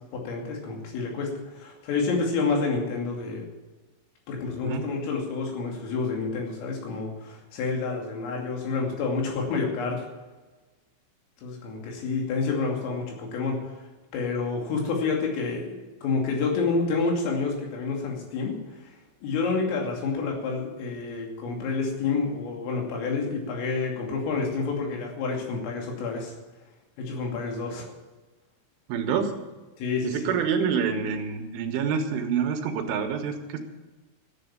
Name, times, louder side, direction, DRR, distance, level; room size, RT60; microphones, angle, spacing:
voice 1, 0.1-3.5 4.3-10.0 11.4-13.9 14.1-18.6 19.2-26.3 27.0-27.9 29.8-30.3, left 4 dB, 90° left, 0 dB, 5.2 m, -29 dB
voice 2, 28.9-29.3 30.0-33.6, right 6 dB, 80° right, 5 dB, 3.7 m, -27 dB
14.5 x 8.0 x 8.9 m, 1.2 s
omnidirectional pair, 5.7 m